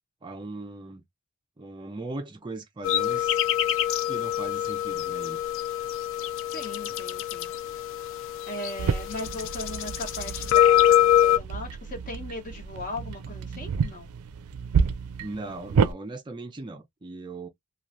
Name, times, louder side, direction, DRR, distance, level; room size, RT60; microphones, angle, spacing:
voice 1, 0.2-1.0 1.6-3.4 4.1-5.4 15.2-17.5, right 2 dB, 20° right, 0.4 m, -38 dB
sound 1, 2.8-11.4, left 11 dB, 60° left, 0.4 m, -25 dB
voice 2, 6.5-7.5 8.2-14.1, left 1 dB, 40° left, 1.1 m, -38 dB
sound 2, 8.8-15.9, right 6 dB, 90° right, 0.4 m, -29 dB
3.1 x 2.3 x 2.5 m
head